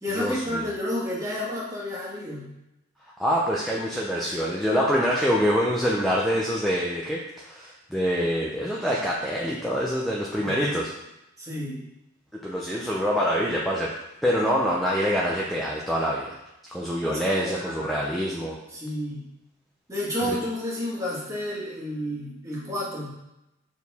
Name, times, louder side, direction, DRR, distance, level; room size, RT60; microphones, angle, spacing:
voice 1, 0.0-2.5 10.4-10.8 11.4-11.8 17.0-17.9 18.7-19.3 19.9-23.1, left 1 dB, 15° right, -6 dB, 1.6 m, -31 dB
voice 2, 3.2-10.9 12.4-13.9 14.2-16.4 16.7-18.6, equal, ahead, -5 dB, 0.6 m, -25 dB
6.3 x 4.6 x 3.5 m, 0.90 s
head